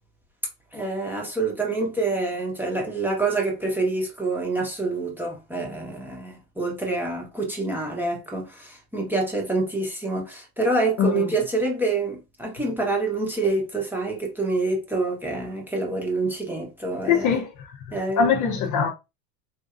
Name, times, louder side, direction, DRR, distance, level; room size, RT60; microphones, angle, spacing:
voice 1, 0.7-17.4 17.9-18.6, right 3 dB, 5° right, 1.0 m, -27 dB
voice 2, 11.0-11.3 17.1-17.8 18.2-18.9, left 7 dB, 40° left, 0.7 m, -22 dB
4.4 x 2.6 x 2.4 m
supercardioid pair, 130°, 48 cm